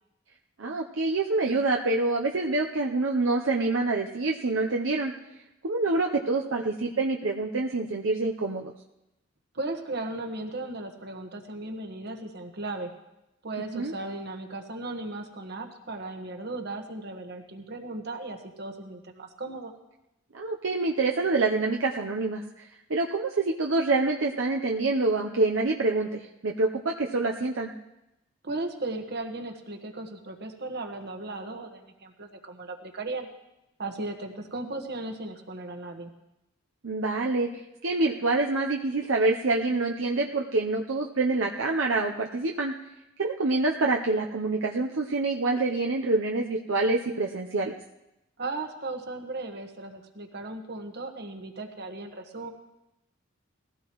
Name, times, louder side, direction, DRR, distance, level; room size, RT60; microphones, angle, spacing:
voice 1, 0.6-5.1 5.6-8.7 13.7-13.9 20.3-27.7 36.8-37.5 37.8-42.7 43.2-47.7, right 3 dB, 80° right, 0 dB, 0.8 m, -26 dB
voice 2, 9.5-12.9 13.4-19.7 28.4-33.3 33.8-36.1 48.4-52.5, right 2 dB, 55° right, 4 dB, 1.5 m, -36 dB
19.0 x 16.0 x 3.1 m, 0.91 s
head